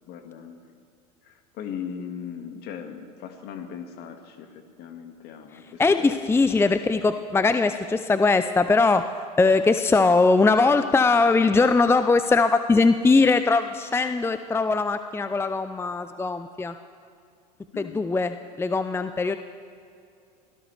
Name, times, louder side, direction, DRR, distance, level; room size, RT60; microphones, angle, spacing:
voice 1, 0.1-0.6 1.2-6.3 17.7-18.1, left 8 dB, 55° left, 5 dB, 2.1 m, -38 dB
voice 2, 5.8-9.1 9.4-16.7 17.8-19.4, left 3 dB, 10° left, 10 dB, 0.6 m, -21 dB
24.0 x 17.0 x 3.5 m, 2.4 s
hypercardioid pair, 80°, 20 cm